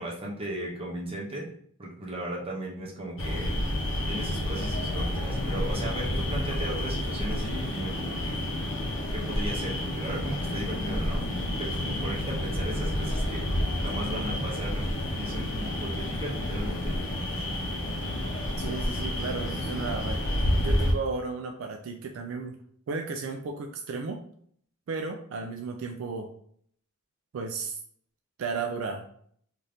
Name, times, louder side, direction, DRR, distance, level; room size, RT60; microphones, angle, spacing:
voice 1, 0.0-1.4 1.8-3.5 4.1-8.4 9.1-11.3 11.6-13.4 13.8-17.0, right 1 dB, 25° right, -3 dB, 0.7 m, -36 dB
sound 1, 3.2-20.9, left 1 dB, 55° left, 0.7 m, -30 dB
voice 2, 18.6-20.2 20.5-22.6 22.9-24.2 24.9-26.3 27.3-27.8 28.4-29.1, right 4 dB, 65° right, 4 dB, 0.3 m, -34 dB
2.7 x 2.5 x 3.3 m, 0.62 s
head